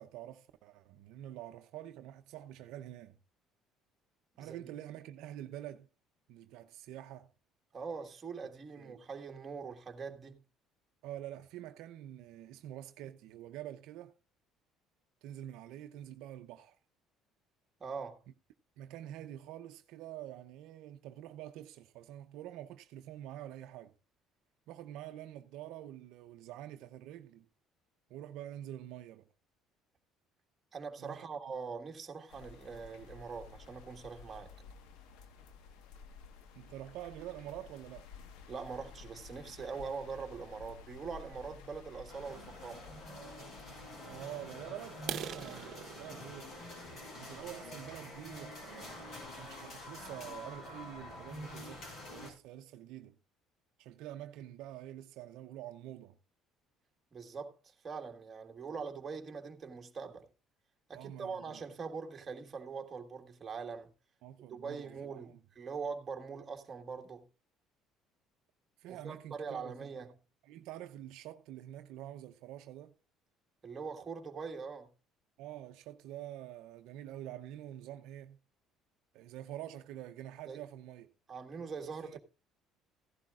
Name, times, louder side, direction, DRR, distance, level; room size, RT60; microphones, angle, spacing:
voice 1, 0.0-3.2 4.4-5.9 6.3-7.3 8.8-9.1 11.0-14.1 15.2-16.8 18.8-23.9 24.7-27.5 28.1-29.3 31.0-31.3 36.6-38.1 44.0-46.5 47.2-53.2 53.8-56.2 60.9-61.6 64.2-65.4 68.8-70.0 70.4-72.9 75.4-78.4 79.1-81.1 82.0-82.2, right 12 dB, 75° right, 0.6 m, -47 dB
voice 2, 7.7-10.4 17.8-18.2 30.7-34.5 38.5-42.9 57.1-60.3 60.9-63.9 64.5-67.2 68.9-70.1 73.6-74.9 80.5-80.6 81.3-82.2, right 5 dB, 30° right, 1.6 m, -43 dB
sound 1, 32.3-44.0, left 5 dB, 85° left, 1.3 m, -53 dB
sound 2, 42.1-52.3, left 1 dB, 50° left, 5.5 m, -47 dB
sound 3, 45.0-48.7 49.3-49.5 49.9-50.0 50.4-50.6 50.9-51.0 51.5-51.6 51.8-52.3, right 10 dB, 55° right, 1.0 m, -45 dB
15.5 x 11.5 x 2.4 m
cardioid pair, 110°, 0 cm